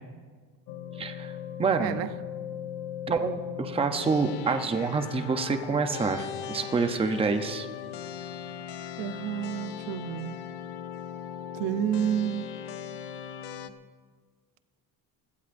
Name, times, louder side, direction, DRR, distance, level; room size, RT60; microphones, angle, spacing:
sound 1, 0.7-13.7, left 8 dB, 70° left, 0.9 m, -38 dB
voice 1, 1.0-1.3 1.6-2.0 3.1-7.7, right 4 dB, 15° right, 7 dB, 0.6 m, -27 dB
voice 2, 9.0-10.4 11.5-12.5, right 10 dB, 85° right, 12 dB, 0.8 m, -30 dB
25.0 x 17.0 x 2.6 m, 1.5 s
cardioid pair, 170°, 42 cm